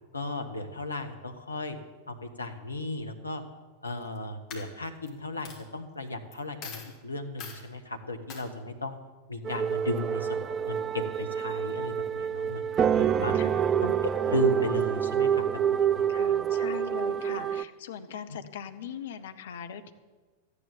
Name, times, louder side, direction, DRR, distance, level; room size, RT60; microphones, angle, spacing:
voice 1, 0.1-1.8 2.1-3.4 3.8-9.0 9.3-13.3 13.8-16.1, left 2 dB, 80° left, 6 dB, 1.3 m, -35 dB
Coin (dropping), 3.9-4.2 4.5-5.1 5.4-5.6 6.3-6.4 6.6-6.9 7.4-7.6 8.3-8.4, left 5 dB, 35° left, 2.9 m, -42 dB
sound 1, 9.4-17.6, right 8 dB, 25° right, 0.4 m, -27 dB
voice 2, 16.1-19.9, left 8 dB, 60° left, 9 dB, 0.9 m, -40 dB
13.5 x 9.9 x 7.2 m, 1.3 s
figure-of-eight pair, 90°, 0 cm